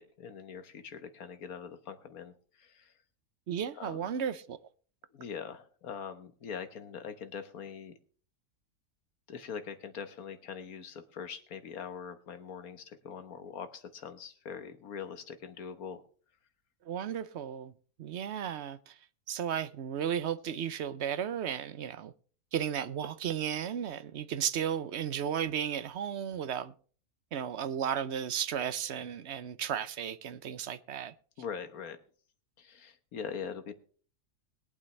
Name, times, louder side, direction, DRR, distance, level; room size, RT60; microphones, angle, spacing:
voice 1, 0.0-2.9 3.8-4.1 5.1-7.9 9.3-16.0 31.4-32.0 32.6-33.7, left 7 dB, 70° left, 1.6 m, -42 dB
voice 2, 3.5-4.6 16.9-17.7 18.0-19.0 19.3-22.1 22.5-26.7 27.3-31.1, right 8 dB, 60° right, 0.8 m, -34 dB
21.5 x 8.7 x 3.3 m
omnidirectional pair, 1.6 m